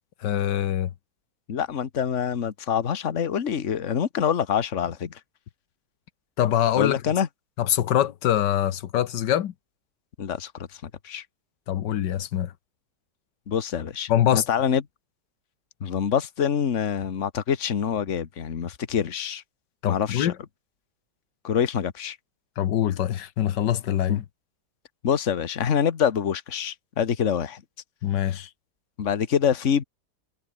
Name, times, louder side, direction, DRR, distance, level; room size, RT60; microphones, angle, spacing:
voice 1, 0.2-0.9 6.4-7.0 7.6-9.5 11.7-12.5 14.1-14.4 19.8-20.3 22.6-24.2 28.0-28.5, left 11 dB, 90° left, 1.6 m, -24 dB
voice 2, 1.5-5.2 6.8-7.3 10.2-11.2 13.5-14.8 15.8-19.4 19.9-20.3 21.4-22.2 24.1-24.2 25.0-27.6 28.3-28.4 29.0-29.8, left 8 dB, 45° left, 1.6 m, -26 dB
omnidirectional pair, 1.8 m